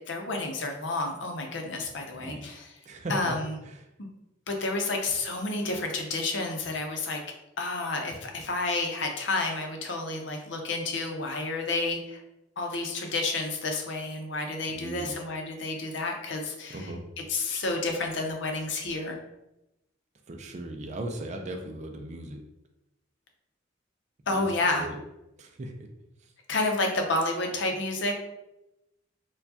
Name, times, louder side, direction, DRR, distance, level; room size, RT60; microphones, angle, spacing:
voice 1, 0.1-2.7 3.1-3.5 4.0-4.1 4.5-7.2 7.6-12.2 12.6-16.9 17.3-19.2 24.3-24.8 26.5-28.1, left 2 dB, 70° left, 3 dB, 0.6 m, -30 dB
voice 2, 2.1-2.5 2.8-3.3 3.6-3.9 14.7-15.1 16.7-17.0 20.3-22.4 24.3-24.5 24.8-25.0 25.4-25.9 26.2-26.3, right 1 dB, 40° right, 3 dB, 0.4 m, -37 dB
4.4 x 2.2 x 2.7 m, 0.91 s
head